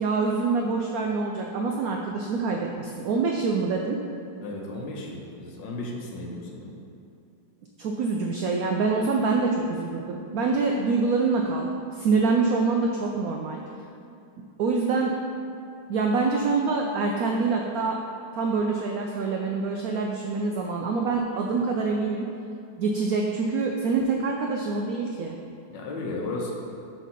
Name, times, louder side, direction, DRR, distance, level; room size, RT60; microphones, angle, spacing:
voice 1, 0.0-4.0 7.8-13.6 14.6-15.2 15.9-18.0 18.3-22.3 22.8-25.4, right 4 dB, 80° right, 1 dB, 0.8 m, -25 dB
voice 2, 4.4-6.7 25.7-26.5, left 2 dB, 75° left, -1 dB, 1.6 m, -34 dB
7.3 x 3.3 x 5.7 m, 2.6 s
omnidirectional pair, 2.1 m